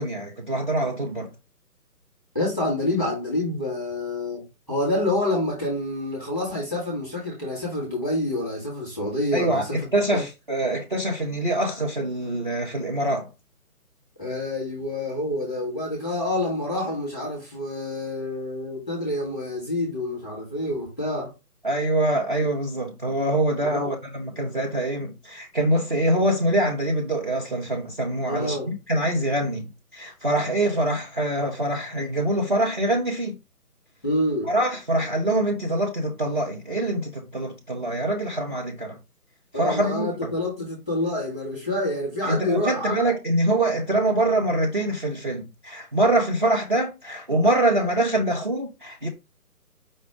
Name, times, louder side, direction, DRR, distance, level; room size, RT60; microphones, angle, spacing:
voice 1, 0.0-1.3 9.3-13.3 21.6-33.4 34.4-39.0 39.5-40.3 42.3-49.1, right 1 dB, 35° right, 0.6 m, -24 dB
voice 2, 2.3-9.9 10.1-10.2 14.2-21.3 23.6-23.9 28.3-28.7 34.0-34.5 39.5-43.0, left 1 dB, 5° right, 1.0 m, -27 dB
5.1 x 2.2 x 4.7 m
hypercardioid pair, 160°, 47 cm